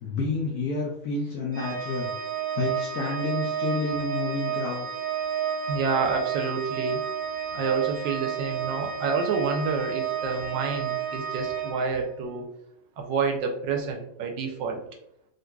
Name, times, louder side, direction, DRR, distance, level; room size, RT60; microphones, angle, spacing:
voice 1, 0.0-2.1 2.6-4.8, left 3 dB, 75° left, -2 dB, 0.9 m, -29 dB
Organ, 1.5-12.4, right 8 dB, 15° right, 0.8 m, -31 dB
voice 2, 5.7-7.0 7.5-12.5 13.0-14.8, right 5 dB, 75° right, 3 dB, 1.2 m, -28 dB
3.8 x 2.8 x 2.2 m, 0.74 s
omnidirectional pair, 2.1 m